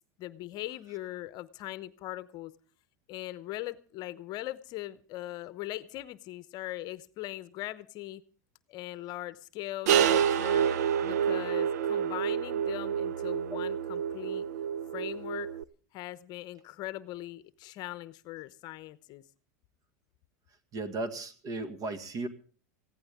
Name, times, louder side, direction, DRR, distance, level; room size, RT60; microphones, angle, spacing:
voice 1, 0.2-2.5 3.1-8.2 8.7-10.7 11.0-14.4 14.9-15.5 15.9-19.2, left 16 dB, 50° left, 16 dB, 0.8 m, -40 dB
sound 1, 9.9-15.6, right 8 dB, 75° right, 0.7 m, -28 dB
voice 2, 20.7-22.3, right 2 dB, 40° right, 10 dB, 2.0 m, -35 dB
20.0 x 15.5 x 3.6 m, 0.39 s
hypercardioid pair, 100°, 9 cm